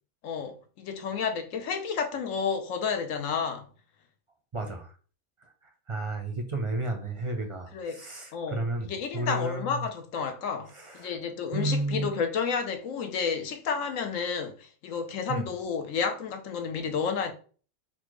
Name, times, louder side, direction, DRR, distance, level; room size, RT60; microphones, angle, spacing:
voice 1, 0.2-3.7 7.7-8.0 8.3-8.6 8.9-17.3, left 6 dB, 80° left, 1.1 m, -31 dB
voice 2, 4.5-4.9 5.4-5.5 5.9-9.8 10.7-11.1 11.5-12.1 15.3-15.5, right 2 dB, 35° right, 0.5 m, -32 dB
4.2 x 2.3 x 4.6 m
omnidirectional pair, 1.4 m